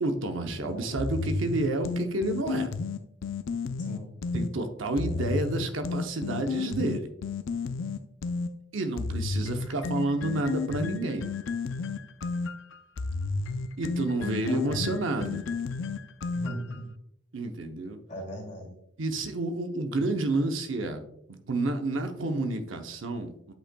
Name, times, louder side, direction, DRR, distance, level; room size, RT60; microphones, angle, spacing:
voice 1, 0.0-2.7 4.3-7.1 8.7-11.3 13.8-15.4 17.3-18.0 19.0-21.0 21.3-23.5, right 2 dB, 70° right, 6 dB, 0.7 m, -30 dB
voice 2, 0.6-1.0 3.8-4.2 5.0-5.4 14.4-14.9 16.3-16.9 18.1-18.7, equal, 35° left, -2 dB, 2.5 m, -40 dB
sound 1, 1.0-4.5 5.0-8.5 9.0-16.8, left 4 dB, 65° left, 0.4 m, -32 dB
8.8 x 5.4 x 2.2 m, 0.75 s
head